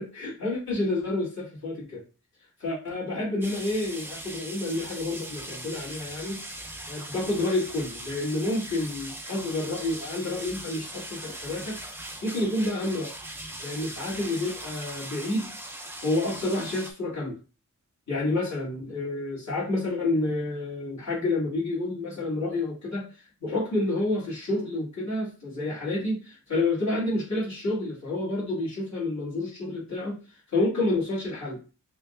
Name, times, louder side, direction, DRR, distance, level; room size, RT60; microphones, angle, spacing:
voice 1, 0.0-2.0 2.6-6.4 6.9-13.1 13.6-15.5 16.0-17.4 18.1-23.1 23.4-30.2 30.5-31.6, left 2 dB, 55° left, -7 dB, 2.5 m, -29 dB
sound 1, 3.4-16.9, right 1 dB, 5° right, 0.5 m, -40 dB
5.5 x 2.7 x 2.6 m, 0.32 s
wide cardioid pair, 155°, 33 cm